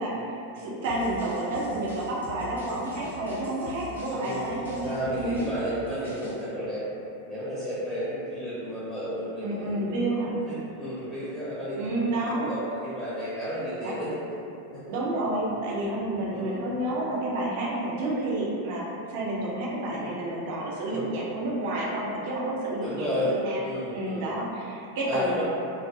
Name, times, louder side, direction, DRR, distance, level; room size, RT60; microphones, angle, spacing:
voice 1, 0.0-5.5 9.4-10.3 11.8-12.6 13.8-13.9 14.9-23.6 23.9-25.4, right 1 dB, 50° right, -5 dB, 0.4 m, -30 dB
sound 1, 0.8-6.4, left 1 dB, 75° left, 0.5 m, -44 dB
voice 2, 4.1-6.8 7.2-12.6 12.8-14.1 14.7-14.8 15.4-15.5 16.3-16.6 19.9-20.1 20.9-21.1 22.8-23.3 23.6-24.3 25.1-25.4, equal, ahead, -12 dB, 0.7 m, -33 dB
2.3 x 2.1 x 2.6 m, 2.7 s
figure-of-eight pair, 90°, 0 cm